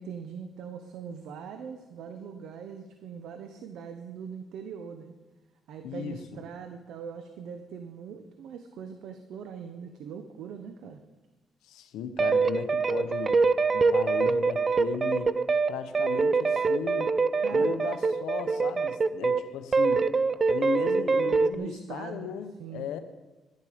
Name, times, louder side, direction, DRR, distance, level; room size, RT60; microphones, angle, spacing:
voice 1, 0.0-5.1 5.7-11.0 17.4-17.7 21.5-22.3 22.6-22.9, right 7 dB, 85° right, 8 dB, 0.8 m, -41 dB
voice 2, 5.8-6.2 11.6-13.4 13.7-15.4 15.7-17.1 17.5-20.1 20.5-23.0, left 7 dB, 90° left, 9 dB, 0.9 m, -36 dB
sound 1, 12.2-19.4 19.7-21.6, right 4 dB, 35° right, 0.4 m, -24 dB
11.0 x 10.5 x 5.0 m, 1.1 s
cardioid pair, 90°, 0 cm